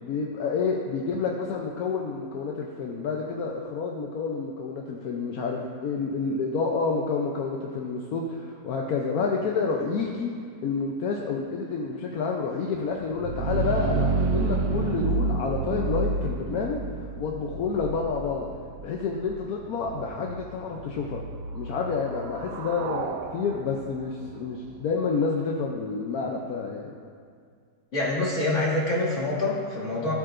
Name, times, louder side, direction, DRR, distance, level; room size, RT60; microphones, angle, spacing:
voice 1, 0.0-10.3 10.6-16.9 17.2-18.5 18.8-21.2 21.5-26.9, left 4 dB, 65° left, 0 dB, 1.0 m, -29 dB
sound 1, 13.0-24.6, right 3 dB, 85° right, 1.3 m, -30 dB
sound 2, 21.2-25.3, right 6 dB, 70° right, 0.9 m, -39 dB
voice 2, 27.9-30.1, left 2 dB, 40° left, -7 dB, 2.5 m, -26 dB
15.0 x 8.5 x 2.5 m, 2.1 s
omnidirectional pair, 1.9 m